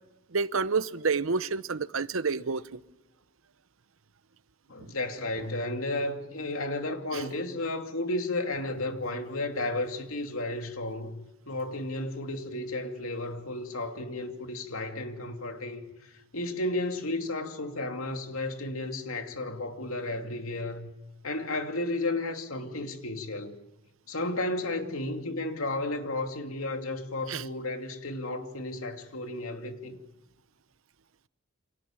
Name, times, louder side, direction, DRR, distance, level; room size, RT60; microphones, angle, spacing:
voice 1, 0.3-2.8 4.8-4.9 7.1-7.2 27.3-27.4, right 4 dB, 70° right, 0.9 m, -29 dB
voice 2, 4.7-20.9 21.2-23.6 24.1-30.0, left 2 dB, 85° left, 2.7 m, -33 dB
29.0 x 26.0 x 7.4 m
head